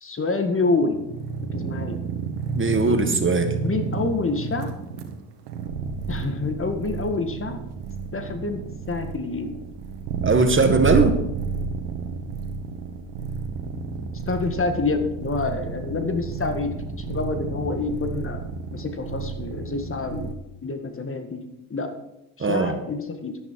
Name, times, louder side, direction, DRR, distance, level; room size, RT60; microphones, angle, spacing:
voice 1, 0.0-1.0 1.5-2.0 3.6-4.7 6.1-7.6 8.1-9.6 14.3-16.7 17.1-18.4 18.7-20.4 20.6-21.9 22.4-23.4, left 3 dB, 25° left, 7 dB, 1.8 m, -27 dB
sound 1, 0.8-20.3, right 5 dB, 90° right, 1.7 m, -31 dB
voice 2, 2.5-3.5 10.2-11.2 22.4-22.8, right 3 dB, 25° right, 7 dB, 1.8 m, -20 dB
11.5 x 10.5 x 4.7 m, 0.96 s
supercardioid pair, 75°, 46 cm